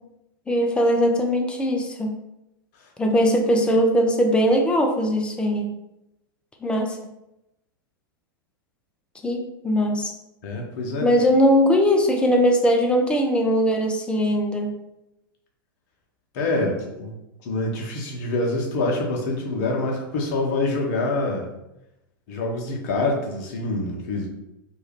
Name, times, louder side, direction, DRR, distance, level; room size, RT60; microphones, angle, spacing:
voice 1, 0.5-2.1 3.0-5.7 6.6-7.0 9.2-10.1 11.0-14.7, equal, 10° left, 2 dB, 0.4 m, -20 dB
voice 2, 10.4-11.1 16.3-17.1 17.4-21.5 22.3-24.3, left 2 dB, 45° left, 0 dB, 0.8 m, -26 dB
2.7 x 2.3 x 3.4 m, 0.89 s
figure-of-eight pair, 90°, 12 cm